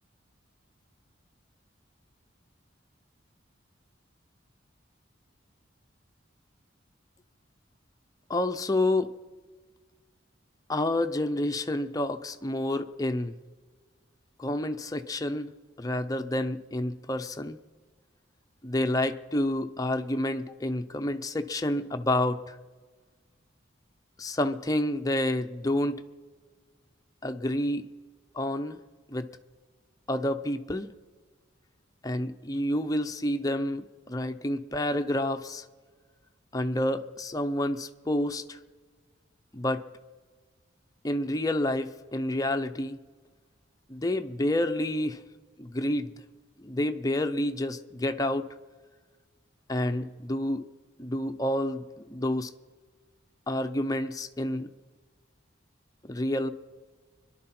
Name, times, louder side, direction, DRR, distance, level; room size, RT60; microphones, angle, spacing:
voice 1, 8.3-9.1 10.7-13.4 14.4-15.5 15.8-17.6 18.6-22.5 24.2-26.0 27.2-27.8 28.3-28.8 29.1-29.3 30.1-30.9 32.0-35.6 36.5-38.6 39.5-39.9 41.0-43.0 43.9-45.2 45.6-46.2 46.6-48.5 49.7-50.6 51.0-52.5 53.5-54.7 56.1-56.5, left 1 dB, 20° left, 8 dB, 0.6 m, -29 dB
25.0 x 11.5 x 4.4 m, 1.5 s
head